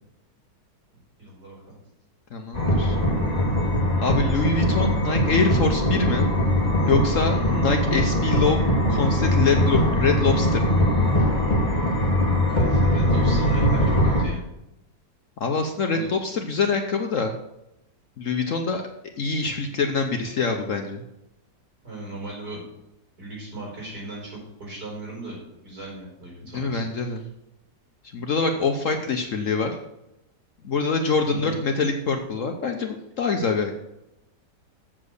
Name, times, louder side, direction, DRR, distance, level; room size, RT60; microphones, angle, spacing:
voice 1, 1.2-1.8 7.3-7.6 11.8-12.1 12.5-14.4 15.9-16.1 21.8-22.6 23.2-27.1 31.3-31.6, right 2 dB, 65° right, -4 dB, 5.2 m, -38 dB
voice 2, 2.3-3.0 4.0-6.3 6.9-8.6 8.9-10.8 15.4-17.3 18.2-18.8 19.2-21.0 26.5-27.3 28.1-29.8 30.6-33.7, left 4 dB, 55° left, 4 dB, 1.0 m, -25 dB
sound 1, 2.5-14.2, left 1 dB, 25° left, 1.7 m, -21 dB
7.4 x 7.4 x 6.5 m, 0.86 s
omnidirectional pair, 1.9 m